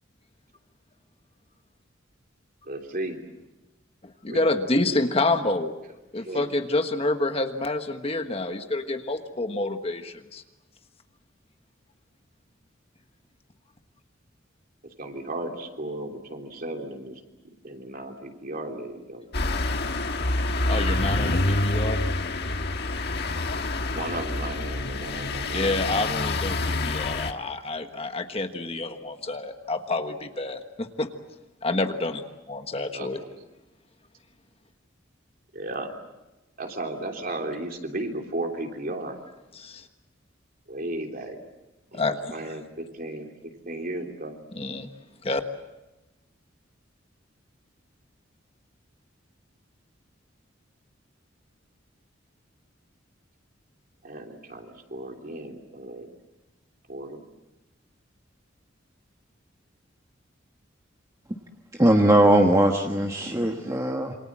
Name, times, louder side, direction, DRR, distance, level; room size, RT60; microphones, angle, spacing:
voice 1, 2.6-3.2 4.3-4.5 6.2-6.5 14.8-17.2 17.6-19.3 23.9-25.7 32.9-33.5 35.5-35.9 36.6-39.2 40.7-41.4 41.9-44.4 54.0-56.1 56.9-57.2, right 1 dB, 50° right, 3 dB, 3.3 m, -35 dB
voice 2, 4.0-5.7 6.1-10.4 20.7-22.0 25.5-31.1 31.6-33.2 39.5-39.9 41.9-42.2 44.6-44.9 45.2-45.4, left 2 dB, 30° left, 7 dB, 1.4 m, -28 dB
sound 1, 19.3-27.3, left 2 dB, 55° left, 1.6 m, -27 dB
voice 3, 61.8-64.1, right 1 dB, 15° right, 3 dB, 1.3 m, -20 dB
27.5 x 25.0 x 7.5 m, 1.0 s
head